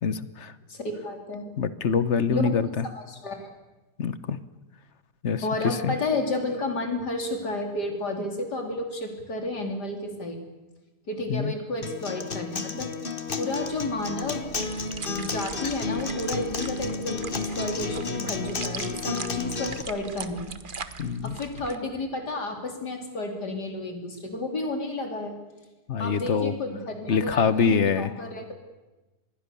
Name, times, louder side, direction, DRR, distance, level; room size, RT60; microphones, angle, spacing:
voice 1, 0.0-0.5 1.6-2.8 4.0-4.4 5.2-5.9 11.3-11.5 21.0-21.3 25.9-26.5 27.1-28.1, left 6 dB, 50° left, 14 dB, 1.2 m, -25 dB
voice 2, 0.7-1.4 2.3-2.6 2.9-3.5 5.4-10.4 11.1-12.9 13.4-14.7 15.1-20.5 21.2-25.3 26.0-28.5, left 2 dB, 85° left, 4 dB, 4.0 m, -31 dB
Acoustic guitar, 11.8-19.8, left 4 dB, 35° left, 1.5 m, -32 dB
sound 1, 13.6-21.8, right 5 dB, 35° right, 1.1 m, -41 dB
26.0 x 21.0 x 7.0 m, 1.1 s
omnidirectional pair, 1.7 m